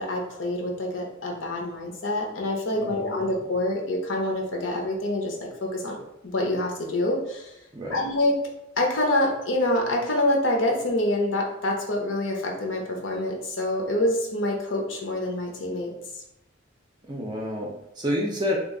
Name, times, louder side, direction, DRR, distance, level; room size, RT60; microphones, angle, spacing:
voice 1, 0.0-5.4 5.6-6.0 6.2-7.5 7.9-8.3 8.8-15.9, left 1 dB, 70° left, 0 dB, 0.7 m, -26 dB
voice 2, 2.7-3.2 7.7-8.1 17.0-18.6, left 1 dB, 20° right, -2 dB, 0.4 m, -29 dB
2.9 x 2.5 x 3.6 m, 0.84 s
head